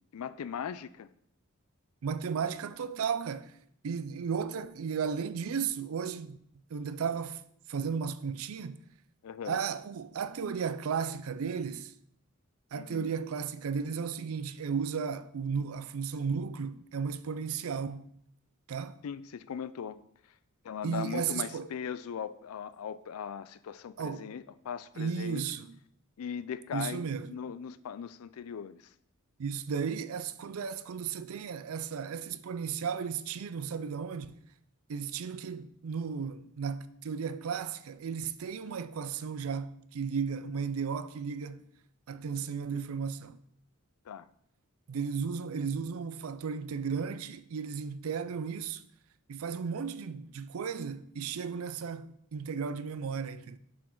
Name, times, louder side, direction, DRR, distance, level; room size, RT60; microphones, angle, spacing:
voice 1, 0.1-1.1 9.2-9.6 12.7-13.1 19.0-20.1 20.6-25.4 26.2-28.9 44.1-44.3, left 7 dB, 85° left, 0.4 m, -39 dB
voice 2, 2.0-3.5 3.8-6.4 6.7-7.4 7.7-8.8 9.5-11.9 12.7-18.1 18.7-19.0 20.8-21.7 24.0-24.3 25.0-25.8 26.7-27.3 29.4-34.4 34.9-41.6 42.1-43.4 44.9-48.8 49.3-53.6, right 6 dB, 75° right, 0.4 m, -34 dB
7.2 x 4.8 x 3.8 m
head